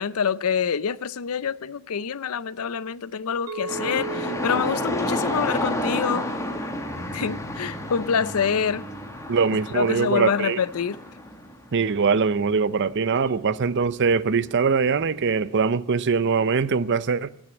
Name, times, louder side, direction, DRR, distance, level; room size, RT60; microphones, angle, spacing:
voice 1, 0.0-6.3 7.1-8.9 9.7-11.0, left 7 dB, 70° left, 0.5 m, -26 dB
Chink clink, 3.5-7.7, right 3 dB, 75° right, 1.0 m, -38 dB
sound 1, 3.7-14.5 14.8-15.4, left 1 dB, 15° left, 1.4 m, -31 dB
voice 2, 9.3-10.6 11.7-17.3, right 5 dB, 55° right, 0.5 m, -22 dB
18.5 x 6.3 x 8.5 m
head